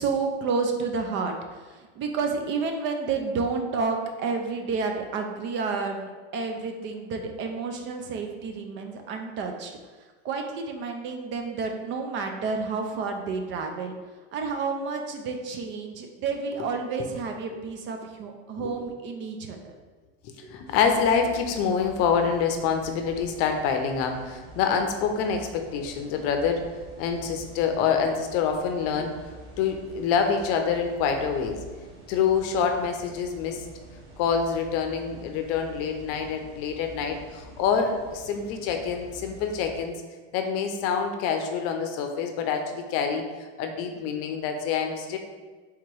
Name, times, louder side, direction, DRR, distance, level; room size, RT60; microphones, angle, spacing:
voice 1, 0.0-13.9 14.3-19.7 20.4-20.5, right 4 dB, 40° right, 4 dB, 0.5 m, -30 dB
voice 2, 20.2-26.6 27.0-29.1 29.6-31.6 32.1-33.6 34.2-40.0 40.3-43.3 43.6-45.2, left 6 dB, 50° left, 5 dB, 0.6 m, -26 dB
sound 1, 20.7-39.8, right 1 dB, 75° right, 1.3 m, -47 dB
3.6 x 2.9 x 4.5 m, 1.3 s
supercardioid pair, 130°, 30 cm